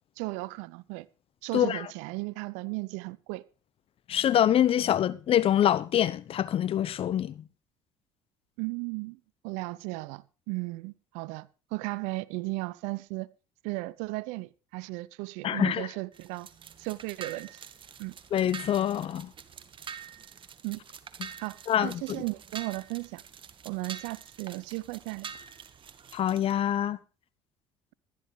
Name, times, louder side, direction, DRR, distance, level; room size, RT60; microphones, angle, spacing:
voice 1, 0.2-1.1 1.4-3.4 8.6-13.3 13.6-16.5 16.8-17.6 18.0-18.1 20.6-20.8 21.4-23.2 23.6-25.3, right 23 dB, 65° right, 0.6 m, -35 dB
voice 2, 4.1-7.3 15.4-15.9 18.3-19.3 21.2-21.3 21.7-22.0 26.1-27.0, left 10 dB, 45° left, 0.9 m, -25 dB
sound 1, 16.1-26.5, right 7 dB, 40° right, 1.4 m, -46 dB
19.0 x 12.0 x 3.2 m
hypercardioid pair, 60°, 13 cm